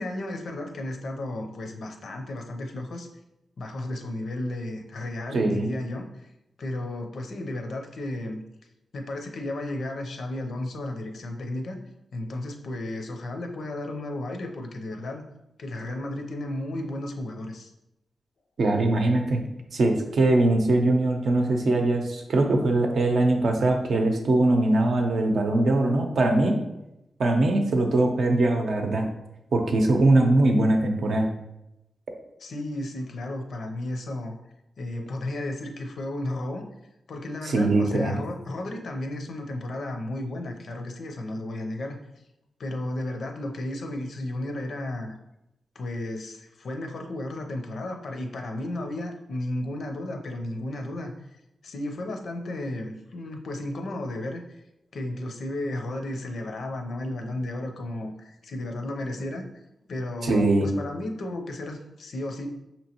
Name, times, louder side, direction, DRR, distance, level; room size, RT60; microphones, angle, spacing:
voice 1, 0.0-3.1 3.6-6.3 6.6-8.4 8.9-11.8 12.1-15.3 15.6-17.7 32.4-34.4 34.8-36.6 37.1-42.0 42.6-45.1 45.7-54.6 54.9-59.4 59.9-62.5, left 1 dB, 65° left, 3 dB, 0.5 m, -33 dB
voice 2, 5.3-5.7 18.6-19.4 19.7-26.5 27.2-29.1 29.5-31.3 37.5-38.2 60.2-60.7, right 2 dB, 65° right, 3 dB, 0.6 m, -21 dB
5.3 x 2.9 x 2.9 m, 0.90 s
wide cardioid pair, 125°, 0 cm